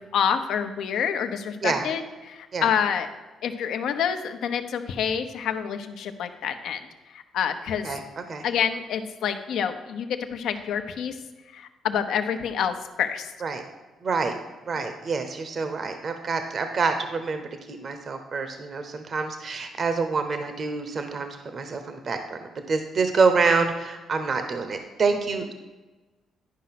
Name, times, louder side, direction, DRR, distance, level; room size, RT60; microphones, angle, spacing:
voice 1, 0.0-3.1 3.4-6.8 7.3-7.9 8.4-11.2 11.5-13.3 14.8-14.9, left 8 dB, 75° left, 7 dB, 0.8 m, -27 dB
voice 2, 7.8-8.4 13.4-13.6 14.0-14.3 14.7-17.4 17.7-25.5, right 4 dB, 50° right, 7 dB, 0.9 m, -27 dB
11.0 x 5.1 x 5.9 m, 1.2 s
cardioid pair, 90°, 0 cm